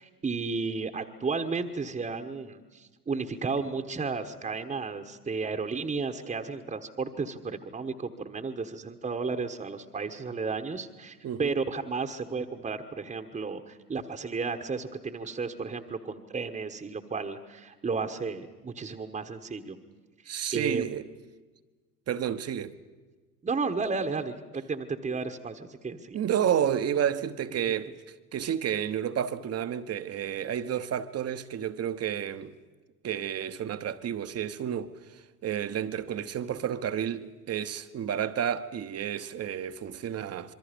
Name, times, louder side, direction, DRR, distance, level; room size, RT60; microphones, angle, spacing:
voice 1, 0.0-19.8 20.5-20.9 23.4-26.2, right 4 dB, 15° right, 1.3 m, -33 dB
voice 2, 11.2-11.5 20.3-21.1 22.1-22.7 26.1-27.9 28.3-32.6 33.0-40.5, right 9 dB, 30° right, 1.1 m, -31 dB
26.5 x 23.0 x 5.2 m
figure-of-eight pair, 75°, 46 cm